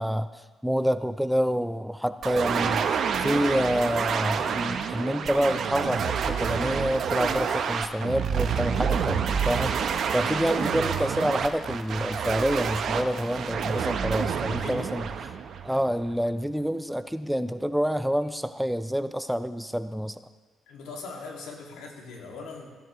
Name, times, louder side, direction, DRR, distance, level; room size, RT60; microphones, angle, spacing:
voice 1, 0.0-15.1 15.6-20.2, equal, ahead, 11 dB, 0.4 m, -27 dB
sound 1, 2.2-16.1, right 7 dB, 65° right, 0.8 m, -28 dB
voice 2, 14.5-15.1 20.7-22.7, left 3 dB, 90° left, 0 dB, 2.2 m, -41 dB
16.0 x 11.0 x 3.1 m, 1.3 s
cardioid pair, 90°, 0 cm